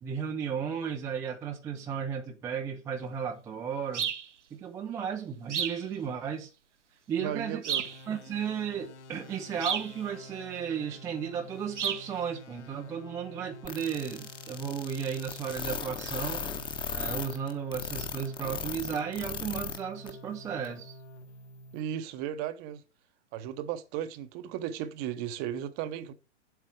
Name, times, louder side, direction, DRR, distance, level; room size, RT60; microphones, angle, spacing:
voice 1, 0.0-4.1 4.5-6.5 7.1-7.6 8.1-16.4 16.9-21.0, right 7 dB, 10° right, 0.5 m, -34 dB
sound 1, 3.9-4.3 5.5-5.8 7.6-8.0 9.6-9.9 11.8-12.1, right 8 dB, 75° right, 0.9 m, -31 dB
voice 2, 7.2-7.8 21.7-22.8 23.3-26.1, right 10 dB, 25° right, 0.8 m, -35 dB
sound 2, 7.8-22.3, left 1 dB, 70° left, 1.6 m, -49 dB
sound 3, 13.6-19.8 20.1-20.2 20.6-20.7, left 5 dB, 15° left, 1.0 m, -36 dB
9.0 x 7.8 x 4.9 m
figure-of-eight pair, 115°, 36 cm